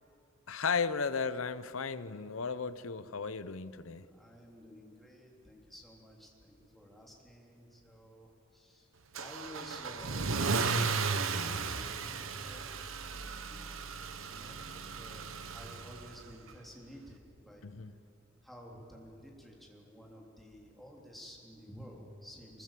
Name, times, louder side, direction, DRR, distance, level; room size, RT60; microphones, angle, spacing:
voice 1, 0.5-4.0 17.6-17.9, left 5 dB, 85° left, 14 dB, 0.8 m, -35 dB
voice 2, 3.8-8.9 9.2-12.8 13.1-13.8 14.2-15.3 15.5-17.7 18.4-22.6, equal, ahead, -2 dB, 3.5 m, -52 dB
Car / Engine starting / Accelerating revving vroom, 9.2-16.3, right 4 dB, 80° right, 1.2 m, -35 dB
23.5 x 22.0 x 7.6 m, 2.7 s
head